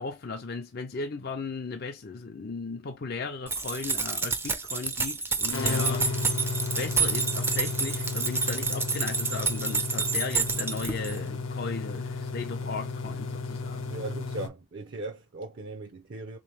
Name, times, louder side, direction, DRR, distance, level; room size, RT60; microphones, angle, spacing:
voice 1, 0.0-6.1 6.8-13.9, left 4 dB, 50° left, 0.5 m, -36 dB
sound 1, 3.5-11.2, right 4 dB, 10° right, 0.4 m, -29 dB
sound 2, 5.5-14.5, left 4 dB, 85° left, 0.8 m, -33 dB
voice 2, 13.9-16.4, right 2 dB, 60° right, 0.6 m, -38 dB
3.7 x 3.0 x 3.3 m
head